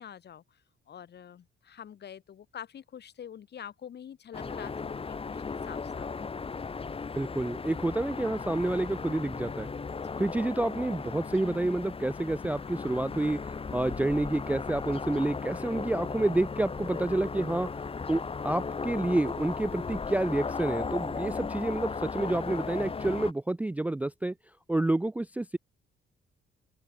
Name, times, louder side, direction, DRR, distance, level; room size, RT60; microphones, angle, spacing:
voice 1, 0.0-6.1 6.5-6.7 9.9-10.2, left 9 dB, 55° left, 2.7 m, -46 dB
sound 1, 4.3-23.3, left 5 dB, 30° left, 1.3 m, -36 dB
voice 2, 7.2-9.7 10.2-13.4 13.7-17.7 18.1-24.3 24.7-25.6, right 2 dB, 5° right, 0.4 m, -29 dB
open air
cardioid pair, 90°, 20 cm